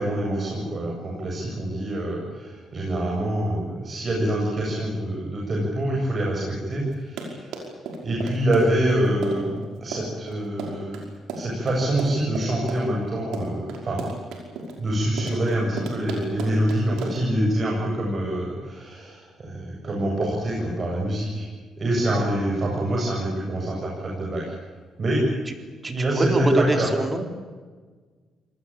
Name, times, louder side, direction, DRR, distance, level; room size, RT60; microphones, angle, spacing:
voice 1, 0.0-7.5 8.0-11.0 11.3-14.0 14.8-21.5 21.8-24.4 25.0-25.2 25.9-26.9, right 1 dB, 40° right, -2 dB, 7.7 m, -25 dB
Run, 6.9-17.3, right 4 dB, 85° right, 5.4 m, -34 dB
voice 2, 25.8-27.2, right 2 dB, 25° right, 6 dB, 4.0 m, -25 dB
26.0 x 19.5 x 8.8 m, 1.4 s
cardioid pair, 90°, 0 cm